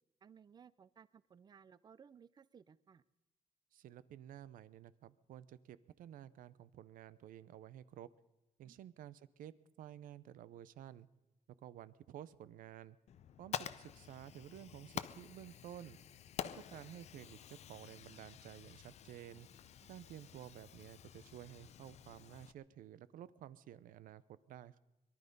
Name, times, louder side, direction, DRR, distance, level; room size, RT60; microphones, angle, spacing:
voice 1, 0.2-3.0 8.6-8.9 16.5-16.6, right 7 dB, 30° right, 19 dB, 0.5 m, -61 dB
voice 2, 3.7-8.1 8.6-11.1 11.6-13.0 13.4-16.0 16.5-19.5 19.9-24.8, right 11 dB, 80° right, 17 dB, 0.7 m, -53 dB
Fire, 13.1-22.5, left 10 dB, 50° left, 0.5 m, -49 dB
22.5 x 12.0 x 5.4 m, 0.98 s
cardioid pair, 155°, 14 cm